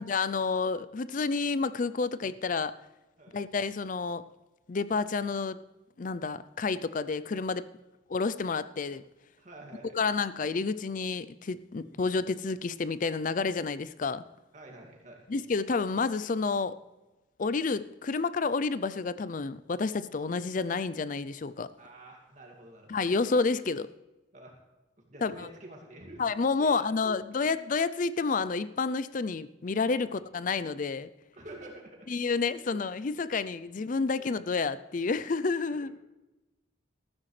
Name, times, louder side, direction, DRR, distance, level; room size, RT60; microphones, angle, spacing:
voice 1, 0.0-2.7 3.3-4.2 4.7-5.6 6.0-7.6 8.1-9.0 10.0-14.2 15.3-16.8 17.4-21.7 22.9-23.9 25.2-25.5 26.2-31.1 32.1-36.0, left 4 dB, 40° left, 15 dB, 0.4 m, -30 dB
voice 2, 9.4-10.0 11.8-12.0 14.5-15.3 21.8-23.1 24.3-24.6 25.0-26.2 26.6-27.4 30.0-30.1 31.3-32.4 33.2-33.3 35.7-35.9, right 1 dB, 40° right, 0 dB, 2.3 m, -49 dB
14.0 x 13.5 x 3.3 m, 1.0 s
head